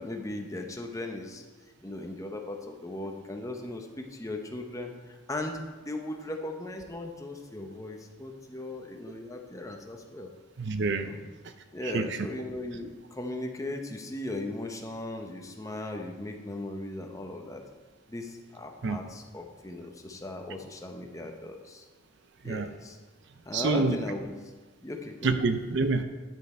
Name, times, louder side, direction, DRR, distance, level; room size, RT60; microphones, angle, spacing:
voice 1, 0.0-1.4 1.8-10.3 11.0-11.2 11.7-17.6 18.1-21.9 22.4-23.0 23.5-24.5 24.8-25.4, left 1 dB, 15° left, 3 dB, 0.8 m, -38 dB
voice 2, 10.6-11.1 11.8-12.2 18.8-19.0 22.4-22.7 23.5-24.0 25.2-26.0, right 3 dB, 60° right, 9 dB, 0.6 m, -27 dB
10.5 x 6.6 x 4.4 m, 1.3 s
head